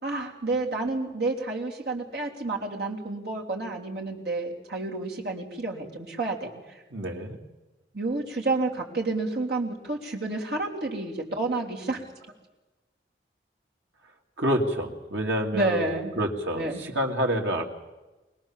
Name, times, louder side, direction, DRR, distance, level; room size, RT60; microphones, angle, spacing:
voice 1, 0.0-6.5 7.9-12.0 15.5-16.1 16.5-16.8, right 2 dB, 70° right, -1 dB, 3.5 m, -30 dB
voice 2, 6.9-7.4 14.4-15.9 16.2-17.6, equal, 85° right, 2 dB, 2.8 m, -27 dB
25.0 x 18.5 x 7.5 m, 1.1 s
head